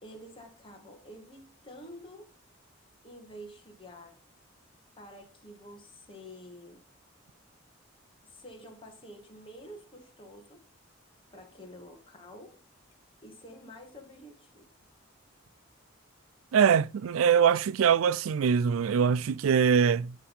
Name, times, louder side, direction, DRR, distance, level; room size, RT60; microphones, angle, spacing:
voice 1, 0.0-2.3 3.0-4.2 5.0-6.8 8.3-10.6 11.3-12.6 13.2-14.7, equal, 25° left, 2.0 m, -49 dB
voice 2, 16.5-20.1, right 7 dB, 85° right, 0.4 m, -23 dB
11.0 x 3.7 x 5.5 m
head